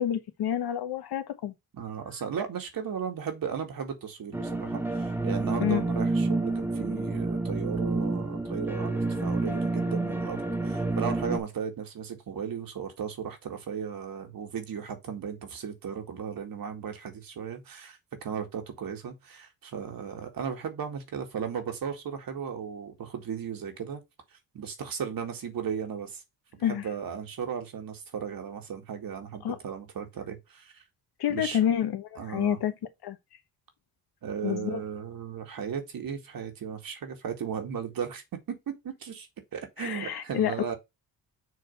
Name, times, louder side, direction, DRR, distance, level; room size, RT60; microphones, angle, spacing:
voice 1, 0.0-1.5 5.6-5.8 26.6-26.8 29.4-29.6 31.2-32.7 33.0-33.2 34.4-34.8 39.8-40.5, left 10 dB, 70° left, 1.2 m, -28 dB
voice 2, 1.7-24.0 24.3-26.2 26.6-30.8 31.3-31.6 32.2-32.6 34.2-40.7, right 7 dB, 55° right, 2.1 m, -36 dB
sound 1, 4.3-11.4, right 2 dB, 5° right, 0.9 m, -29 dB
6.6 x 3.3 x 5.5 m
cardioid pair, 90°, 40 cm